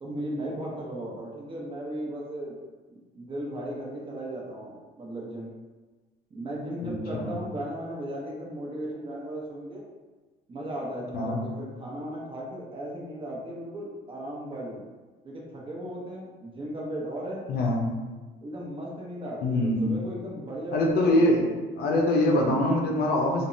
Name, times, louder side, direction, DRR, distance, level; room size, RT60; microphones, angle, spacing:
voice 1, 0.0-2.6 2.9-5.5 6.3-9.8 10.5-14.8 15.2-17.4 18.4-21.5, right 1 dB, 30° right, -3 dB, 0.7 m, -36 dB
voice 2, 6.8-7.4 11.1-11.4 17.5-17.9 19.4-19.9 20.7-21.4 21.8-23.5, left 1 dB, 65° left, 0 dB, 0.6 m, -24 dB
3.4 x 2.0 x 2.6 m, 1.3 s
cardioid pair, 110°, 17 cm